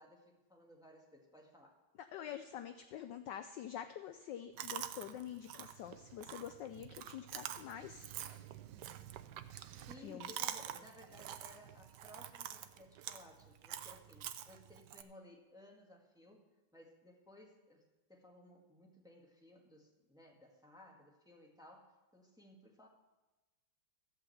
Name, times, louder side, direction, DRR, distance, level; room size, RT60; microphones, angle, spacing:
voice 1, 0.0-1.7 9.8-22.9, left 1 dB, ahead, -1 dB, 1.4 m, -59 dB
voice 2, 2.1-8.1 10.0-10.3, left 10 dB, 75° left, 9 dB, 1.0 m, -46 dB
Chewing mastication, 4.6-15.0, right 11 dB, 75° right, 1.0 m, -47 dB
14.0 x 5.5 x 7.7 m, 1.1 s
omnidirectional pair, 2.4 m